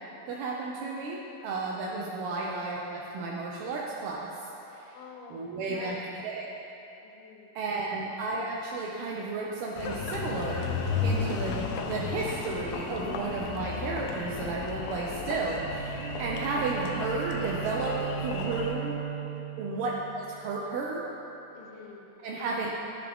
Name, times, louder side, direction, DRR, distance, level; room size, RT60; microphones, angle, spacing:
voice 1, 0.3-1.2 1.4-4.9 5.3-6.4 7.5-10.7 11.0-17.9 18.2-18.9 19.6-21.0 22.2-22.8, right 3 dB, 90° right, -3 dB, 1.6 m, -33 dB
voice 2, 4.8-5.4 5.7-6.1 7.0-7.8 19.7-19.9 21.5-22.6, left 5 dB, 75° left, 1 dB, 1.6 m, -49 dB
Engine, 9.8-18.7, left 4 dB, 90° left, 0.8 m, -34 dB
Bowed string instrument, 15.3-20.7, right 8 dB, 70° right, 1.1 m, -37 dB
13.0 x 4.7 x 3.4 m, 3.0 s
omnidirectional pair, 2.4 m